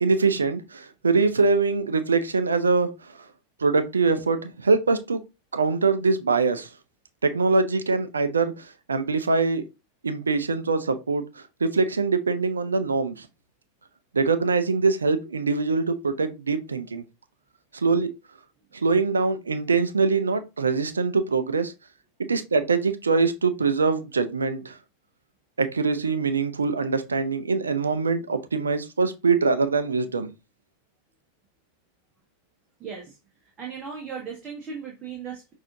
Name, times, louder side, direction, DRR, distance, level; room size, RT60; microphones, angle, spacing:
voice 1, 0.0-3.2 3.6-5.2 5.5-6.7 7.2-9.6 10.0-13.3 14.1-17.0 17.7-18.1 18.7-21.7 22.2-24.8 25.6-30.3, right 4 dB, 75° right, 0.5 m, -23 dB
voice 2, 32.8-33.2 33.4-35.5, right 6 dB, 25° right, 1.2 m, -37 dB
6.1 x 2.7 x 2.6 m
figure-of-eight pair, 90°, 0 cm